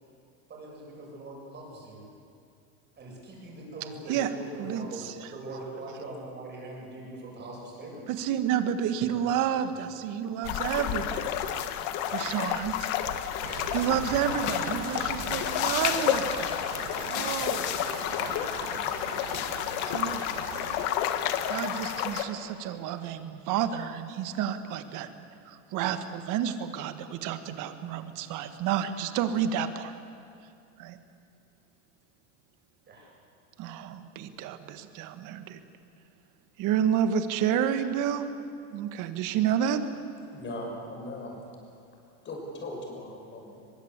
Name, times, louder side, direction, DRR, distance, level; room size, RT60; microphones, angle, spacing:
voice 1, 0.5-2.1 3.0-8.1 9.1-9.6 18.2-18.4 32.9-33.2, right 2 dB, 25° right, -3 dB, 7.9 m, -42 dB
voice 2, 4.6-5.3 8.1-11.7 12.1-12.9 13.7-17.9 19.9-20.2 21.5-25.1 25.5-29.9 30.8-31.0 33.6-35.6 36.6-38.3 38.7-39.9, right 9 dB, 45° right, 9 dB, 1.8 m, -30 dB
sound 1, 10.4-22.2, left 10 dB, 55° left, 1.7 m, -30 dB
sound 2, 13.4-20.9, right 8 dB, 85° right, 2.5 m, -41 dB
voice 3, 40.3-41.3 42.2-43.6, left 1 dB, 25° left, 1 dB, 6.2 m, -38 dB
22.5 x 22.5 x 8.4 m, 2.5 s
supercardioid pair, 145°, 44 cm